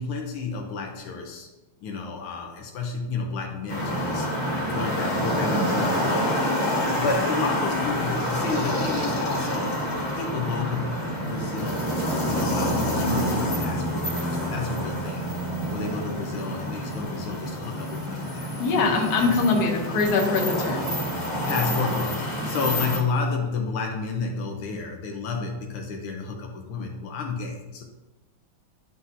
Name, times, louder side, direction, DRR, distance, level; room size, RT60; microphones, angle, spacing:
voice 1, 0.0-1.5 1.8-4.3 4.7-6.4 7.0-9.8 10.1-11.9 12.2-15.3 15.7-18.5 19.2-19.4 21.5-27.8, left 4 dB, 80° left, 1 dB, 1.6 m, -31 dB
sound 1, 3.7-23.0, equal, 40° left, 1.8 m, -27 dB
voice 2, 18.6-20.9, left 4 dB, 55° left, 0 dB, 1.4 m, -23 dB
10.5 x 3.9 x 2.7 m, 1.0 s
omnidirectional pair, 2.4 m